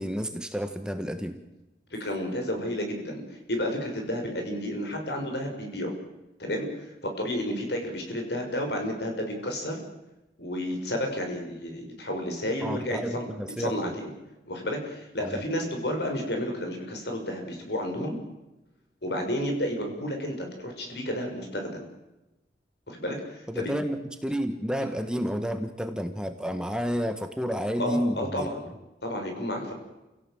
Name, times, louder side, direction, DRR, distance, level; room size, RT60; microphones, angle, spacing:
voice 1, 0.0-1.4 12.6-13.8 15.2-15.4 23.5-28.5, equal, 5° right, 7 dB, 1.3 m, -30 dB
voice 2, 1.9-5.9 6.4-6.7 7.2-9.8 10.4-13.3 13.6-14.1 14.5-18.2 19.0-21.9 22.9-23.7 27.8-28.6 29.0-29.7, equal, 70° left, 3 dB, 6.2 m, -31 dB
29.0 x 17.5 x 7.7 m, 1.0 s
head